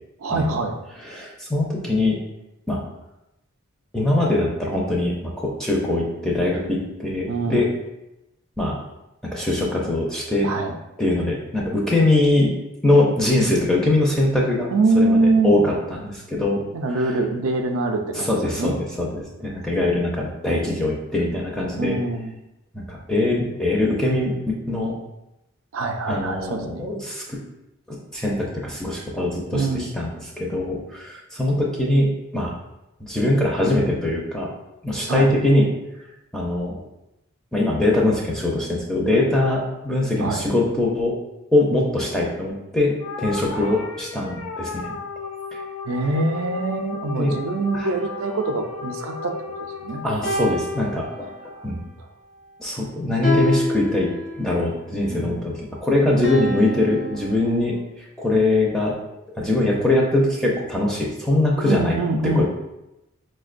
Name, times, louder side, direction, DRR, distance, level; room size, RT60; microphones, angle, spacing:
voice 1, 0.2-0.8 7.3-7.6 10.4-10.7 14.7-15.6 16.7-18.8 21.8-22.4 25.7-26.9 29.5-29.9 35.1-35.3 40.2-40.4 43.5-43.9 45.9-49.4 49.8-50.0 51.6-51.7 55.1-55.4 61.6-62.5, right 2 dB, 70° right, 4 dB, 0.4 m, -24 dB
voice 2, 1.1-2.2 2.7-2.8 3.9-7.7 8.6-8.8 9.2-10.5 11.0-12.5 12.8-14.7 15.0-15.2 15.4-16.6 18.1-22.0 22.7-25.0 26.1-27.4 27.9-29.7 29.9-32.5 33.0-34.5 34.8-35.7 36.3-36.8 37.5-41.2 41.5-44.9 47.2-47.3 47.7-47.9 50.0-51.3 51.6-51.8 52.6-54.1 54.4-59.0 59.3-62.0 62.4-62.5, left 2 dB, 5° left, -3 dB, 0.4 m, -22 dB
sound 1, 43.0-51.6, left 5 dB, 75° left, 0.4 m, -35 dB
sound 2, 47.9-49.6 50.2-51.7 53.2-54.7 56.2-57.7, left 1 dB, 40° left, 0.8 m, -29 dB
4.9 x 2.1 x 2.4 m, 0.93 s
head